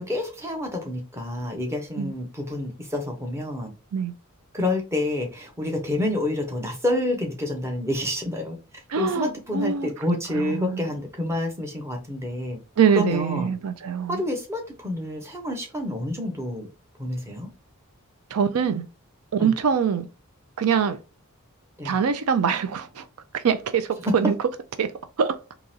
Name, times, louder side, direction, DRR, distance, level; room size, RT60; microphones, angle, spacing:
voice 1, 0.0-3.7 4.5-8.6 9.0-12.6 12.9-13.5 14.1-16.7 17.0-17.5 19.4-19.5 21.8-22.0, left 1 dB, 10° right, 0.8 m, -28 dB
voice 2, 8.9-10.9 12.8-14.2 18.3-18.9 19.3-20.1 20.6-21.0 21.8-23.1 23.3-24.3 24.8-24.9 25.2-25.4, right 7 dB, 75° right, 0.4 m, -24 dB
3.7 x 2.9 x 2.7 m
head